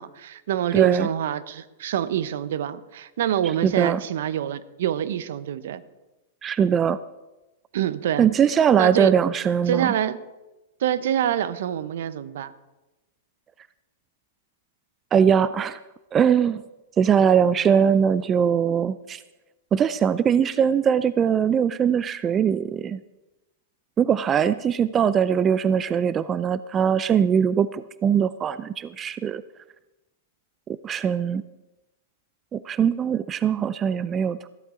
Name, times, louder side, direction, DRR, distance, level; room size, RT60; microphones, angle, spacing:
voice 1, 0.0-5.8 7.7-8.3 8.8-9.1 9.7-10.2 10.8-12.5, right 10 dB, 65° right, 15 dB, 0.8 m, -26 dB
voice 2, 0.7-1.1 3.6-4.0 6.4-7.0 8.2-9.9 15.1-15.8 16.1-16.6 17.0-19.2 19.7-23.0 24.0-29.4 30.7-31.4 32.5-34.5, right 8 dB, 25° right, 16 dB, 0.4 m, -21 dB
15.0 x 13.0 x 3.8 m, 1.0 s
hypercardioid pair, 115°, 0 cm